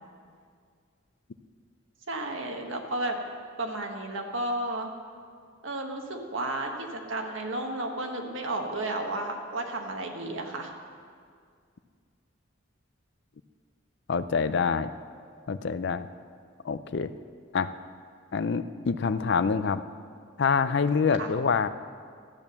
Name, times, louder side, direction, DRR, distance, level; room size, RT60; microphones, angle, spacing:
voice 1, 2.1-3.2 3.6-4.9 5.6-10.7 21.2-21.3, right 2 dB, 70° right, 3 dB, 1.4 m, -32 dB
voice 2, 14.1-14.9 15.5-16.1 16.6-17.1 17.5-17.7 18.3-19.8 20.4-21.7, left 5 dB, 55° left, 13 dB, 0.4 m, -26 dB
13.0 x 8.7 x 7.0 m, 2.1 s
head